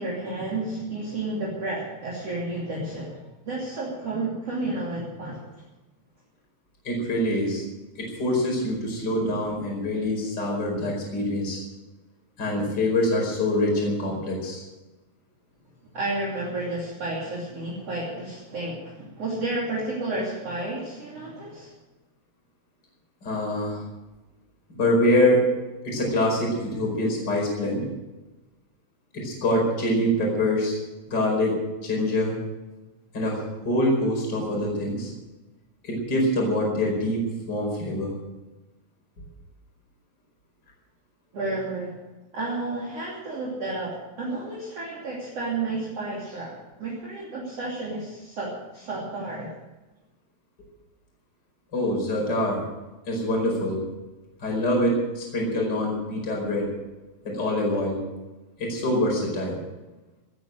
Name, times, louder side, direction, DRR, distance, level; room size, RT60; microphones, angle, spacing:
voice 1, 0.0-3.2 3.4-5.4 15.9-21.7 41.3-42.0 42.3-49.5, right 2 dB, 40° right, -4 dB, 3.7 m, -31 dB
voice 2, 6.8-7.6 8.0-11.6 12.4-14.6 23.2-23.8 24.8-25.5 25.8-27.8 29.1-30.8 31.1-32.4 33.1-35.1 35.8-38.1 51.7-52.6 53.1-53.8 54.4-56.7 57.2-58.0 58.6-59.6, left 1 dB, 25° left, -1 dB, 5.2 m, -25 dB
17.5 x 9.6 x 7.7 m, 1.1 s
omnidirectional pair, 4.6 m